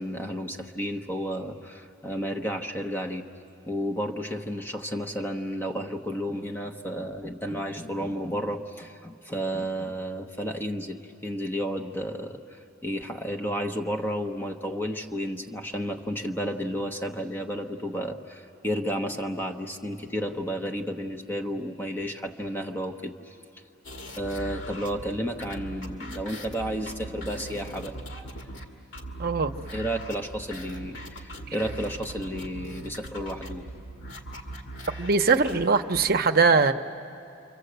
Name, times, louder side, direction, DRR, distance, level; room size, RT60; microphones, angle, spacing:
voice 1, 0.0-3.3 3.7-12.4 12.8-23.4 24.1-28.3 29.7-33.7, equal, 10° left, 3 dB, 1.0 m, -32 dB
sound 1, 23.8-36.1, right 1 dB, 75° left, 2.0 m, -40 dB
voice 2, 29.2-29.5 35.0-36.7, right 4 dB, 50° right, 8 dB, 0.8 m, -21 dB
28.5 x 24.5 x 8.0 m, 2.6 s
head